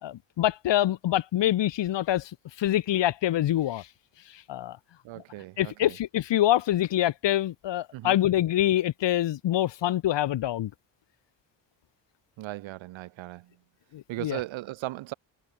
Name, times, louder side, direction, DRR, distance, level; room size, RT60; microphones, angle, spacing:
voice 1, 0.0-2.3 2.6-3.9 4.5-4.8 5.6-10.7 13.9-14.4, left 13 dB, 65° left, 1.3 m, -25 dB
voice 2, 5.0-6.0 7.9-8.2 12.4-13.5 14.1-15.1, right 16 dB, 85° right, 1.4 m, -37 dB
cardioid pair, 85°, 46 cm